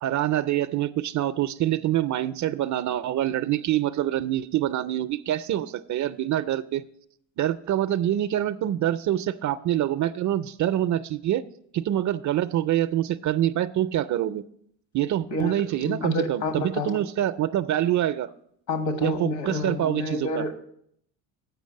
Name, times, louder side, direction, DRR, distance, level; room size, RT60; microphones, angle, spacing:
voice 1, 0.0-6.8 7.4-11.4 11.7-14.4 14.9-18.3 19.0-20.4, right 12 dB, 45° right, 13 dB, 0.4 m, -25 dB
voice 2, 15.8-17.0 18.7-20.5, left 2 dB, 70° left, 6 dB, 1.8 m, -29 dB
8.0 x 5.1 x 7.5 m, 0.70 s
supercardioid pair, 90°, 41 cm